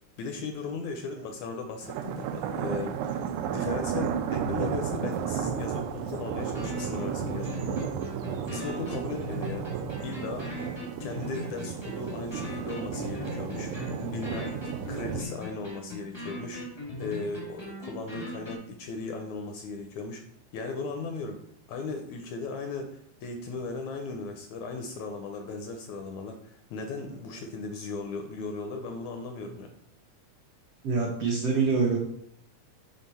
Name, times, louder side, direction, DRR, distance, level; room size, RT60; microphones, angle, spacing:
voice 1, 0.2-7.9 8.5-9.7 10.0-10.5 11.0-13.7 14.1-20.2 20.5-21.4 21.7-29.7, left 4 dB, 75° left, 4 dB, 1.8 m, -37 dB
sound 1, 1.8-15.2, right 8 dB, 85° right, 2.1 m, -33 dB
sound 2, 5.1-5.2 5.6-5.7 6.1-6.2 6.5-18.6, left 1 dB, 35° left, 0.4 m, -39 dB
voice 2, 30.8-32.0, right 5 dB, 65° right, -3 dB, 1.5 m, -25 dB
6.5 x 3.6 x 5.5 m, 0.71 s
omnidirectional pair, 3.8 m